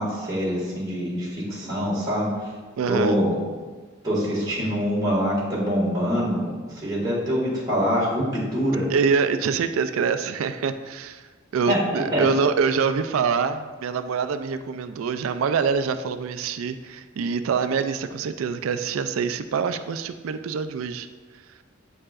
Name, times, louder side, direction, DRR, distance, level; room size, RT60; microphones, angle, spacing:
voice 1, 0.0-2.3 2.9-3.3 4.0-6.5 6.8-8.9 11.7-12.2, equal, 20° right, -8 dB, 1.8 m, -24 dB
voice 2, 2.8-3.2 8.9-11.3 11.5-21.1, right 6 dB, 90° right, 10 dB, 0.4 m, -25 dB
8.6 x 4.6 x 2.4 m, 1.4 s
head